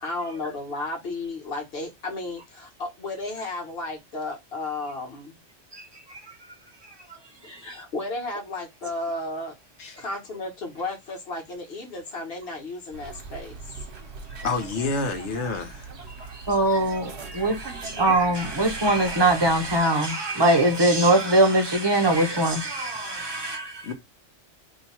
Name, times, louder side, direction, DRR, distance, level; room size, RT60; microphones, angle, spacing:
voice 1, 0.0-5.4 7.4-9.5 10.0-13.6, left 2 dB, 55° left, 1.3 m, -33 dB
sound 1, 12.9-19.8, right 4 dB, 65° right, 1.0 m, -40 dB
voice 2, 14.4-15.8 23.8-23.9, left 3 dB, 70° left, 1.1 m, -28 dB
voice 3, 16.5-23.9, right 1 dB, 25° right, 0.7 m, -22 dB
2.9 x 2.2 x 4.1 m
omnidirectional pair, 1.2 m